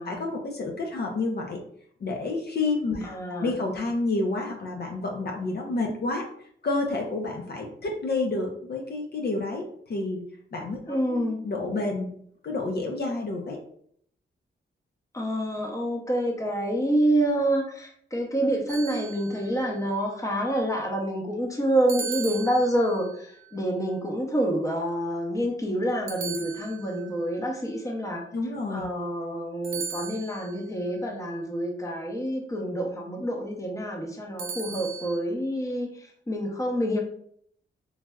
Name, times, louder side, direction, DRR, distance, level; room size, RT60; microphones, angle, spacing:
voice 1, 0.0-1.6 2.0-3.1 3.4-6.3 6.6-10.2 10.5-12.1 12.4-13.6 28.3-28.9, left 2 dB, 50° left, 1 dB, 0.6 m, -29 dB
voice 2, 3.0-3.5 10.9-11.4 15.1-28.2 28.7-37.0, right 1 dB, 15° left, 0 dB, 0.7 m, -27 dB
sound 1, 18.7-19.6 21.9-23.1 26.1-27.1 29.6-30.6 34.4-35.2, right 6 dB, 70° right, 0.4 m, -37 dB
3.2 x 2.5 x 2.2 m, 0.64 s
cardioid pair, 85°, 21 cm